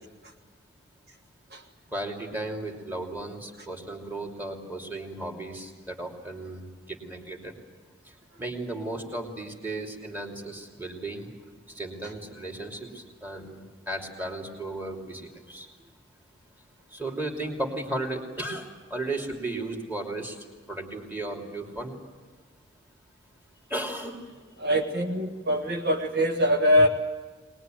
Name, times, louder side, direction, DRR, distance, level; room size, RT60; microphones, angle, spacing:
voice 1, 1.9-7.5 8.4-11.3 11.8-15.2 15.5-15.7 16.9-18.6 18.9-20.3 20.7-21.9 23.7-24.2, right 2 dB, 10° right, 1 dB, 2.9 m, -35 dB
voice 2, 24.6-26.9, equal, 50° right, 2 dB, 1.5 m, -23 dB
23.0 x 20.5 x 9.2 m, 1.3 s
head